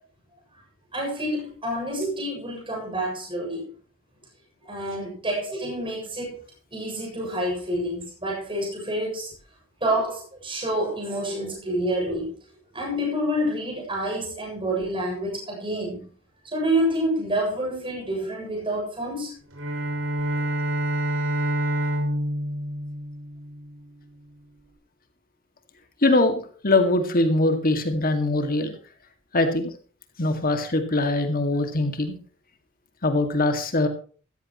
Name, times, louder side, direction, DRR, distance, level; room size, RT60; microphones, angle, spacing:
voice 1, 0.9-3.7 4.6-6.4 6.7-9.3 9.8-12.3 12.7-16.1 16.4-19.4, right 1 dB, 25° right, 7.3 m, -28 dB
Bowed string instrument, 19.5-23.9, equal, 70° right, 6.4 m, -27 dB
voice 2, 26.0-28.8 29.3-29.7 30.2-32.2 33.0-33.9, left 2 dB, 45° left, 2.1 m, -22 dB
15.5 x 14.5 x 3.1 m
head